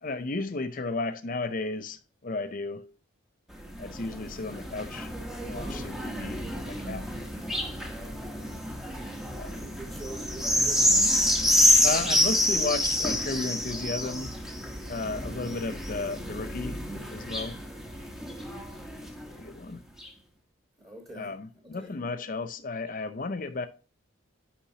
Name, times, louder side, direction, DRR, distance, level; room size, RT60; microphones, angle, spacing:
voice 1, 0.0-2.9 3.8-5.1 5.4-7.1 9.3-9.7 11.8-14.4 14.9-16.8 17.1-17.6 19.3-19.8 21.1-23.7, left 3 dB, 40° left, 0.5 m, -34 dB
sound 1, 3.5-19.4 20.0-20.1, left 1 dB, ahead, 0.9 m, -28 dB
voice 2, 8.2-11.1 20.8-21.3 21.6-21.9, right 2 dB, 20° right, 1.5 m, -45 dB
10.0 x 5.1 x 2.8 m
head